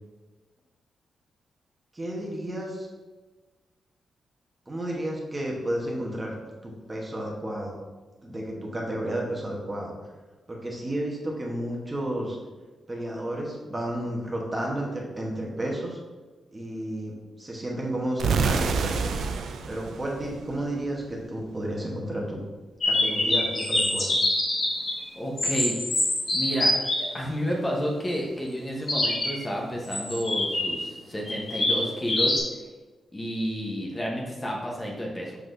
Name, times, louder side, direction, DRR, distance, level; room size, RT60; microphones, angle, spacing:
voice 1, 1.9-2.9 4.7-6.3 6.6-7.8 8.2-10.1 10.5-12.4 12.9-16.0 16.5-19.2 19.7-22.4 22.8-24.1, right 1 dB, 20° right, -2 dB, 1.1 m, -32 dB
sound 1, 18.2-21.1, right 5 dB, 85° right, 0.4 m, -28 dB
sound 2, 22.8-25.0 25.4-27.1 28.9-29.3 29.8-30.8 31.3-32.4, left 1 dB, 50° left, 1.7 m, -25 dB
voice 2, 25.1-25.8 26.3-32.4 33.1-35.4, equal, 20° left, -2 dB, 1.0 m, -30 dB
6.2 x 5.7 x 2.6 m, 1.3 s
wide cardioid pair, 120°, 0 cm